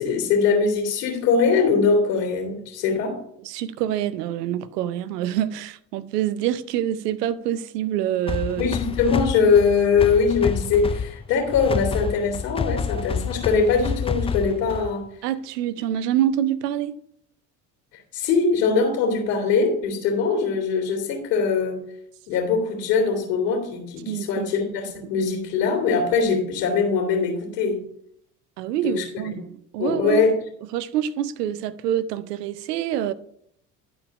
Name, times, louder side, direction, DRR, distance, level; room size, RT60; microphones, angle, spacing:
voice 1, 0.0-3.2 8.6-15.0 18.1-21.8 22.3-27.8 28.8-29.0 29.8-30.4, left 5 dB, 70° left, 2.7 m, -22 dB
voice 2, 3.4-8.7 15.2-17.0 24.1-24.5 25.0-25.1 28.6-30.2 30.6-33.1, right 11 dB, 80° right, 0.7 m, -26 dB
sound 1, 8.3-15.0, left 6 dB, 15° left, 0.4 m, -29 dB
11.0 x 4.6 x 5.2 m
hypercardioid pair, 65°, 47 cm